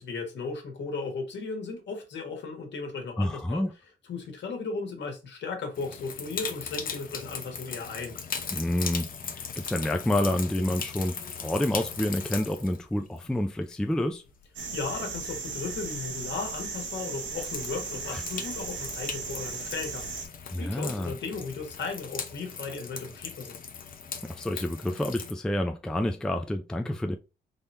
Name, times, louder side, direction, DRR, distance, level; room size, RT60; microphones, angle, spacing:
voice 1, 0.0-3.6 4.1-8.2 14.7-20.1 20.6-23.6, left 4 dB, 65° left, 1.5 m, -36 dB
voice 2, 3.2-3.7 8.5-9.1 9.4-14.2 18.1-18.2 20.5-21.1 24.2-27.2, left 1 dB, 5° left, 0.4 m, -28 dB
sound 1, 5.8-15.1 15.9-16.0 17.4-25.3, left 6 dB, 45° left, 0.7 m, -39 dB
sound 2, 14.5-20.2, right 4 dB, 75° right, 1.2 m, -36 dB
3.6 x 2.8 x 3.3 m
cardioid pair, 90°, 20 cm